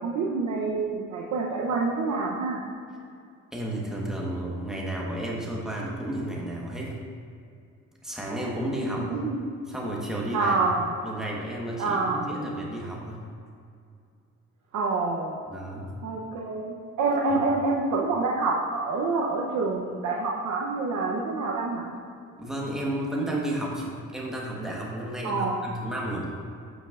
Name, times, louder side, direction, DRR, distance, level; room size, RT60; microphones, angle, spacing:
voice 1, 0.0-2.6 9.1-9.4 10.3-10.9 11.8-12.3 14.7-15.4 16.0-21.9 25.2-25.6, right 3 dB, 70° right, -2 dB, 0.8 m, -27 dB
voice 2, 3.5-7.0 8.0-9.1 9.7-10.6 11.0-13.2 15.5-15.9 17.3-17.5 22.4-26.3, right 1 dB, ahead, -3 dB, 1.3 m, -32 dB
8.0 x 6.1 x 2.5 m, 2.4 s
cardioid pair, 90°, 30 cm